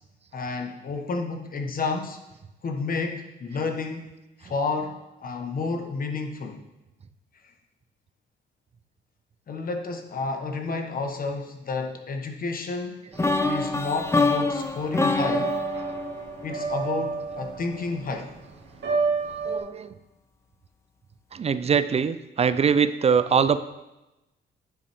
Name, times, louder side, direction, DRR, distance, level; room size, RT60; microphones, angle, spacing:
voice 1, 0.3-2.2 2.6-4.1 4.4-6.6 9.5-13.0 13.4-15.5 16.4-18.3, left 4 dB, 45° left, 4 dB, 1.2 m, -30 dB
sound 1, 13.1-19.6, right 4 dB, 65° right, 1.9 m, -32 dB
sound 2, 13.2-17.2, left 3 dB, 15° left, 0.6 m, -26 dB
voice 2, 19.5-19.9 21.3-23.6, right 6 dB, 30° right, 14 dB, 0.4 m, -22 dB
9.6 x 5.4 x 3.5 m, 0.99 s
cardioid pair, 90°, 20 cm